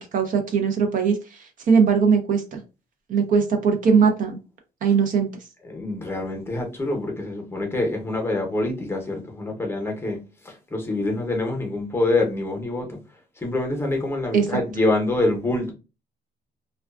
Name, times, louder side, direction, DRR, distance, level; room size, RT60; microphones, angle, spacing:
voice 1, 0.0-2.6 3.1-4.4 4.8-5.3 14.3-14.5, right 6 dB, 50° right, 0.6 m, -20 dB
voice 2, 5.6-10.2 10.4-13.0 13.4-15.7, left 2 dB, 15° left, 0.8 m, -25 dB
2.3 x 2.3 x 2.3 m
cardioid pair, 110°, 17 cm